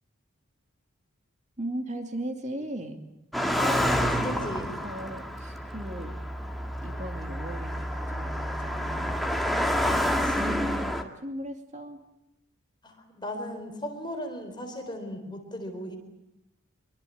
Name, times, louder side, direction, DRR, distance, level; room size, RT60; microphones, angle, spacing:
voice 1, 1.6-3.0 4.8-6.2 6.8-9.3 9.9-12.0, right 1 dB, 35° right, 5 dB, 2.5 m, -37 dB
Car passing by, 3.3-11.0, equal, ahead, 2.0 m, -29 dB
voice 2, 3.6-4.7 10.4-10.6 12.8-16.0, left 1 dB, 20° left, 4 dB, 4.1 m, -36 dB
25.0 x 23.5 x 8.7 m, 0.87 s
head